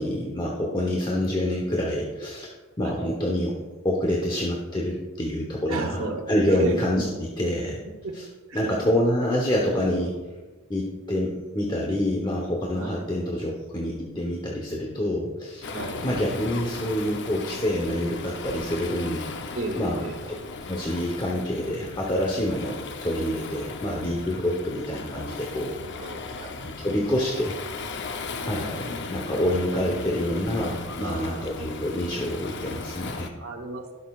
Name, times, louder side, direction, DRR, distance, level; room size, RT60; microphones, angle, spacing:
voice 1, 0.0-3.6 3.8-6.0 6.3-7.8 8.1-8.2 8.5-10.2 10.7-15.7 16.0-20.3 20.7-25.7 26.4-27.6 28.4-33.3, left 1 dB, 20° left, -2 dB, 1.0 m, -27 dB
voice 2, 5.7-6.8 7.0-7.1 8.0-8.1 8.5-8.7 12.8-13.0 15.7-16.0 19.5-20.2 26.0-26.5 31.0-31.5 33.4-33.9, right 2 dB, 65° right, 0 dB, 1.0 m, -33 dB
Waves surf, 15.6-33.3, left 4 dB, 50° left, 0.7 m, -37 dB
17.5 x 6.4 x 2.4 m, 1.3 s
head